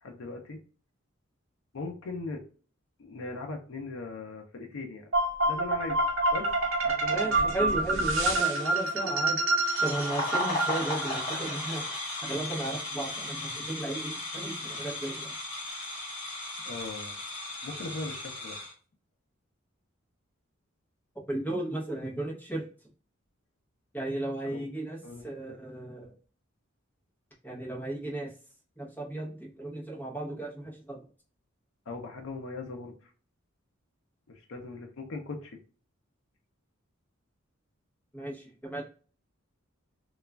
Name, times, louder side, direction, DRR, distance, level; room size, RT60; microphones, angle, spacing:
voice 1, 0.0-0.6 1.7-2.4 3.0-5.1 5.4-6.0 6.3-6.5 6.8-8.1 16.6-17.2 17.6-18.6 24.5-24.6 25.0-25.6 31.9-33.1 34.3-35.5, left 3 dB, 70° left, 2 dB, 0.5 m, -39 dB
sound 1, 5.1-11.2, right 2 dB, 80° right, 0.7 m, -27 dB
voice 2, 7.1-9.4 9.8-11.8 12.2-15.3 21.3-22.7 23.9-25.0 25.2-26.1 27.4-28.3 28.8-31.0 38.1-38.8, right 1 dB, 10° left, -3 dB, 0.8 m, -35 dB
sound 2, 9.6-18.7, left 2 dB, 30° left, 1.1 m, -35 dB
3.0 x 2.3 x 2.2 m, 0.39 s
head